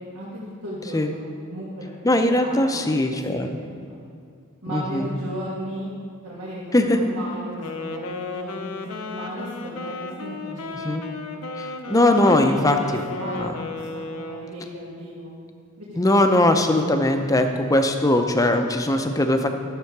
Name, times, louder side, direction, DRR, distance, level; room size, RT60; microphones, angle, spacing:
voice 1, 0.6-1.2 1.5-1.9 2.2-3.0 3.3-4.0 4.6-5.9 6.2-11.1 11.9-13.6 13.9-15.3 15.8-16.2, equal, 90° right, -8 dB, 1.7 m, -35 dB
voice 2, 2.0-3.6 4.7-5.0 6.7-7.0 10.8-11.0 11.6-13.0 13.3-13.5 16.0-19.5, left 1 dB, 15° left, 6 dB, 0.5 m, -20 dB
Wind instrument woodwind instrument, 7.5-14.7, left 3 dB, 75° left, 0.7 m, -34 dB
12.5 x 6.8 x 4.7 m, 2.2 s
head